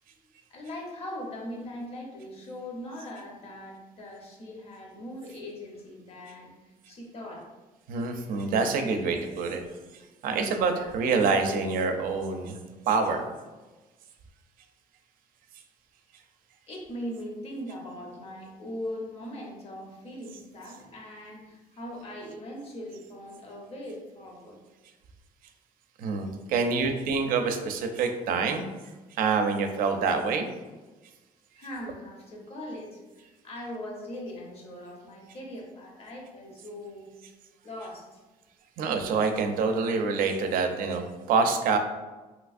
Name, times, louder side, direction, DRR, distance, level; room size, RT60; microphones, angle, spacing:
voice 1, 0.5-7.5 16.7-24.6 31.5-37.1 37.6-38.2, left 1 dB, 45° left, -1 dB, 0.8 m, -40 dB
voice 2, 7.9-9.6 10.2-12.5 12.9-13.2 26.0-28.7 29.2-30.5 38.8-41.8, right 4 dB, 75° right, 5 dB, 0.5 m, -26 dB
3.3 x 3.0 x 2.4 m, 1.2 s
cardioid pair, 115°, 15 cm